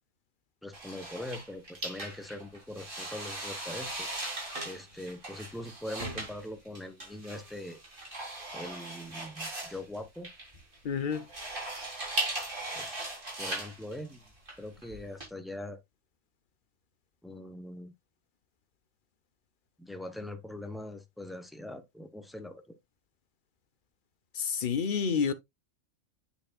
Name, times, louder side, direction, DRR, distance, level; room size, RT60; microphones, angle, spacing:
voice 1, 0.6-4.1 4.6-7.8 8.5-10.3 12.7-13.0 13.4-14.3 14.6-15.8 17.2-17.9 19.8-22.8, left 1 dB, ahead, 0.7 m, -42 dB
sound 1, 0.7-15.3, right 2 dB, 40° right, 3.8 m, -39 dB
voice 2, 10.8-11.3 24.4-25.3, left 6 dB, 45° left, 0.8 m, -29 dB
7.8 x 7.0 x 2.3 m
omnidirectional pair, 1.4 m